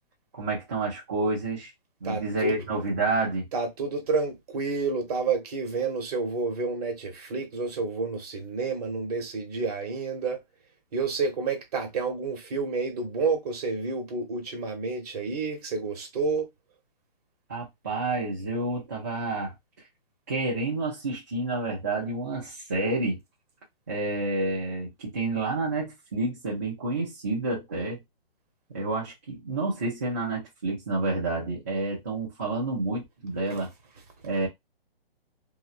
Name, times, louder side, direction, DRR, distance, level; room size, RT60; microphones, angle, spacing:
voice 1, 0.3-1.7 2.0-3.5 17.5-19.5 20.3-23.2 23.9-28.0 28.7-33.7 34.2-34.5, right 2 dB, 20° right, 0.4 m, -29 dB
voice 2, 2.0-2.6 3.5-10.4 10.9-16.5, right 4 dB, 40° right, 1.0 m, -29 dB
2.6 x 2.1 x 2.3 m
hypercardioid pair, 160°, 30 cm